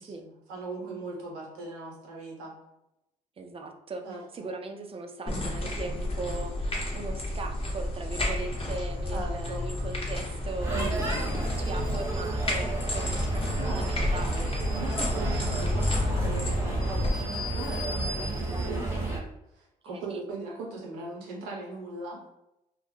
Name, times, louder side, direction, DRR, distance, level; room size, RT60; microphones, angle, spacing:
voice 1, 0.0-2.5 4.0-4.5 9.1-9.6 10.7-11.3 13.6-14.1 14.7-19.2 19.5-22.2, right 3 dB, 75° right, -2 dB, 0.7 m, -39 dB
voice 2, 3.4-4.0 4.3-11.3 11.6-14.6 19.8-20.2, right 3 dB, 30° right, 5 dB, 0.4 m, -39 dB
sound 1, 5.3-17.1, left 1 dB, 30° left, 0.9 m, -31 dB
sound 2, 10.6-19.2, right 2 dB, 15° right, 0.9 m, -31 dB
2.1 x 2.0 x 3.0 m, 0.89 s
hypercardioid pair, 45°, 20 cm